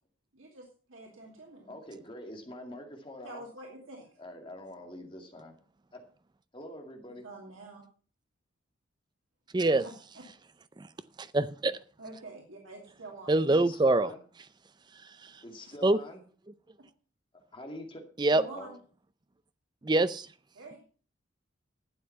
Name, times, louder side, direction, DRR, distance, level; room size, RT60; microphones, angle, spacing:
voice 1, 0.3-1.7 3.2-4.1 7.2-7.8 9.7-10.2 12.0-13.4 16.8-16.9 18.3-18.8 20.5-20.8, right 2 dB, 90° right, 0 dB, 2.5 m, -46 dB
voice 2, 1.7-3.4 4.2-5.5 5.9-6.0 6.5-7.2 13.5-14.2 15.4-16.2 17.5-18.0 18.5-18.8, left 1 dB, 25° left, 3 dB, 2.1 m, -45 dB
voice 3, 9.5-9.8 10.8-10.9 11.2-11.8 13.3-14.1 15.2-15.4 15.8-16.0 18.2-18.4 19.8-20.3, right 2 dB, 20° right, 14 dB, 0.5 m, -25 dB
11.5 x 7.5 x 5.7 m, 0.41 s
head